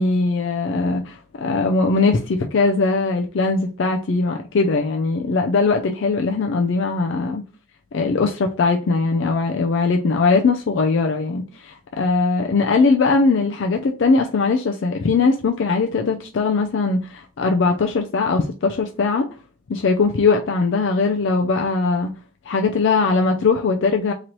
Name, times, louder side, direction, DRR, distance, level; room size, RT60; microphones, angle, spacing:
voice 1, 0.0-7.4 7.9-19.3 19.7-22.1 22.5-24.1, left 4 dB, 65° left, 0.4 m, -20 dB
3.0 x 2.9 x 3.9 m
head